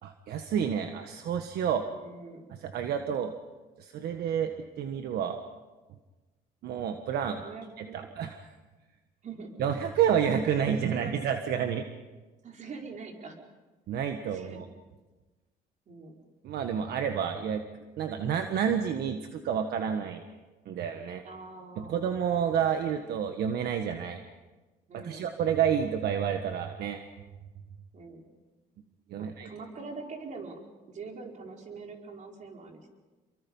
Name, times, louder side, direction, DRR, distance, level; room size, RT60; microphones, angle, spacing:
voice 1, 0.0-1.9 2.5-3.3 3.8-5.4 6.6-7.4 7.8-8.4 9.6-11.9 13.9-14.7 16.4-17.6 18.0-20.2 20.6-21.2 21.8-24.2 24.9-27.0 29.1-29.5, right 8 dB, 70° right, 6 dB, 1.5 m, -29 dB
voice 2, 2.0-2.5 7.4-8.1 9.2-9.5 10.5-11.1 12.4-13.4 14.3-14.7 15.9-16.2 21.2-22.1 24.9-25.3 27.9-28.2 29.2-30.6 30.9-32.9, right 4 dB, 45° right, 1 dB, 4.9 m, -44 dB
28.5 x 23.5 x 5.6 m, 1.2 s
cardioid pair, 110°, 17 cm